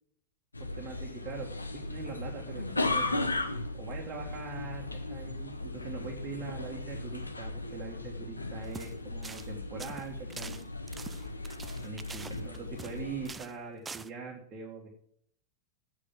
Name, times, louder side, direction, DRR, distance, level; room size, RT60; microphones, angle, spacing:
sound 1, 0.5-13.3, left 2 dB, 80° left, 0.9 m, -37 dB
voice 1, 0.6-1.6 1.9-3.3 3.7-10.6 11.8-14.9, right 5 dB, 30° right, -1 dB, 2.1 m, -42 dB
sound 2, 8.6-8.9 9.2-9.5 9.8-13.0 13.3-13.6 13.9-14.1, right 4 dB, 15° right, 0.5 m, -45 dB
8.4 x 7.7 x 7.5 m, 0.66 s
figure-of-eight pair, 90°, 0 cm